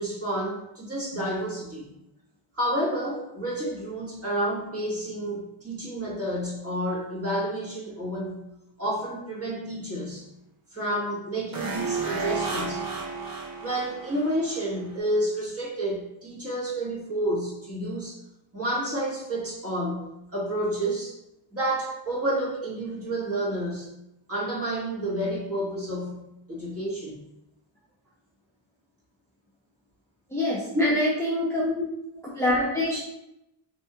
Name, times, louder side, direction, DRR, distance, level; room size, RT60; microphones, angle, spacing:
voice 1, 0.0-1.9 2.5-8.4 8.8-10.2 10.7-12.8 13.6-18.2 18.5-21.1 21.5-23.9 24.3-26.2 26.5-27.2 30.7-31.0 31.6-31.7, right 1 dB, 30° right, -6 dB, 1.3 m, -30 dB
sound 1, 11.5-14.7 14.9-15.0, right 4 dB, 45° right, 0.7 m, -32 dB
voice 2, 30.3-31.6 32.4-33.0, left 1 dB, 5° left, -7 dB, 0.6 m, -25 dB
3.4 x 2.7 x 2.8 m, 0.86 s
wide cardioid pair, 125°, 49 cm